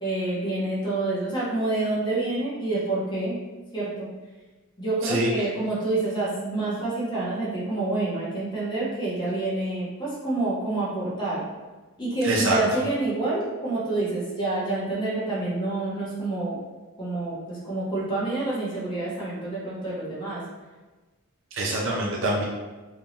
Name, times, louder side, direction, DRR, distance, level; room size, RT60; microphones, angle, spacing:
voice 1, 0.0-3.4 3.7-4.1 4.8-11.4 12.0-16.6 17.0-20.4, right 2 dB, 20° left, -8 dB, 1.1 m, -27 dB
voice 2, 5.0-5.5 12.2-12.8 21.5-22.5, right 1 dB, 55° right, -2 dB, 0.6 m, -25 dB
3.6 x 2.8 x 2.9 m, 1.2 s
head